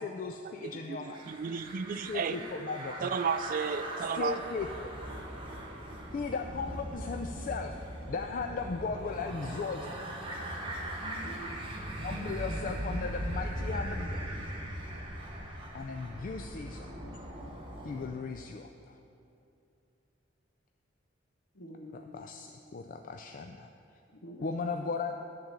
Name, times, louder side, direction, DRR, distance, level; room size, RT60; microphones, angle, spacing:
voice 1, 0.0-1.2 2.1-2.9 4.2-4.9 6.1-7.7 8.1-10.0 12.0-14.2 15.7-16.9 17.8-18.9 21.9-23.7 24.4-25.1, left 4 dB, 45° left, 4 dB, 0.3 m, -37 dB
voice 2, 0.6-2.4 3.0-4.4, right 6 dB, 45° right, 12 dB, 0.3 m, -33 dB
sound 1, 1.1-18.1, right 1 dB, 30° right, 1.0 m, -39 dB
voice 3, 11.0-11.7 21.5-22.2 24.1-24.9, equal, 70° left, 2 dB, 1.0 m, -47 dB
11.0 x 3.8 x 6.9 m, 2.7 s
head